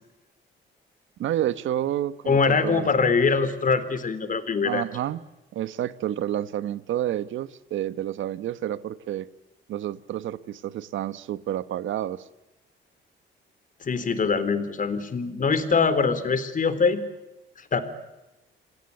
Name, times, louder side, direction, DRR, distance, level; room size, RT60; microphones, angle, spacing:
voice 1, 1.2-2.9 4.6-5.2 5.5-9.3 9.7-12.3, right 12 dB, 75° right, 1.3 m, -29 dB
voice 2, 2.3-4.8 13.8-17.0 17.7-17.8, left 5 dB, 40° left, 3.8 m, -23 dB
29.0 x 22.0 x 8.6 m
cardioid pair, 90°, 20 cm